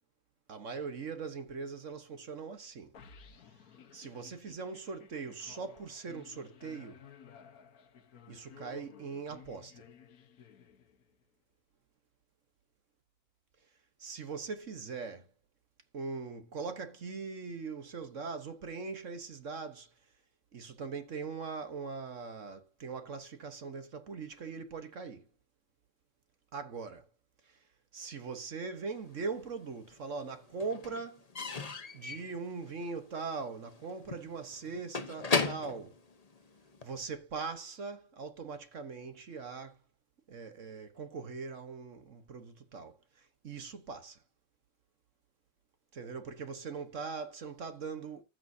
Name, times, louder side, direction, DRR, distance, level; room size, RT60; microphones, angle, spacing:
voice 1, 0.5-3.0 3.9-7.0 8.3-9.9 14.0-15.3 15.9-19.9 20.5-25.3 26.5-27.1 27.4-27.6 27.9-31.3 31.9-36.0 36.8-39.8 40.3-44.2 45.9-48.2, right 4 dB, 50° right, 1.4 m, -41 dB
sound 1, 2.9-11.2, left 7 dB, 60° left, 1.5 m, -56 dB
Slam / Squeak / Wood, 29.1-29.9 30.2-37.0, left 4 dB, 30° left, 0.8 m, -37 dB
14.5 x 6.3 x 2.7 m
omnidirectional pair, 1.8 m